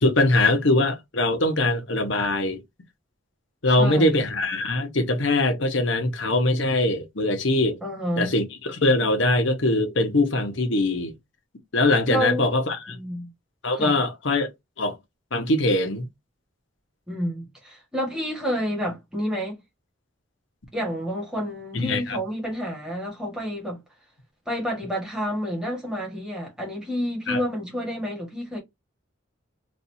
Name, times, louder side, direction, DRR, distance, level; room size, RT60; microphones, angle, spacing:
voice 1, 0.0-2.6 3.6-7.8 8.2-11.1 11.7-13.0 13.6-14.5 14.8-14.9 15.3-16.1 21.7-22.2 27.3-27.4, left 2 dB, 65° left, 1.0 m, -22 dB
voice 2, 3.8-4.1 7.8-8.3 12.1-12.5 12.9-13.3 13.8-14.0 17.1-19.6 20.7-23.8 24.5-28.6, equal, 5° right, 1.5 m, -29 dB
4.2 x 2.6 x 2.7 m
head